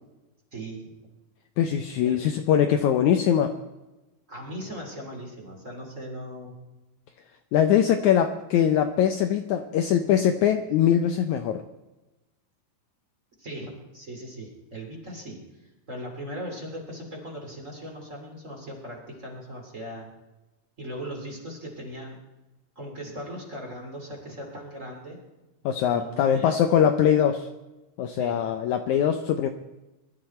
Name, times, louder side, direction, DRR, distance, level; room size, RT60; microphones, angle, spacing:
voice 1, 0.5-1.0 2.0-2.2 4.3-6.5 13.4-20.1 20.8-22.2 22.7-25.2 25.9-26.6 28.1-28.4, equal, 20° right, 0 dB, 2.9 m, -39 dB
voice 2, 1.6-3.6 7.5-11.6 25.6-27.5 28.0-29.5, left 9 dB, 85° left, 7 dB, 1.6 m, -22 dB
22.5 x 12.5 x 4.4 m, 1.0 s
omnidirectional pair, 4.3 m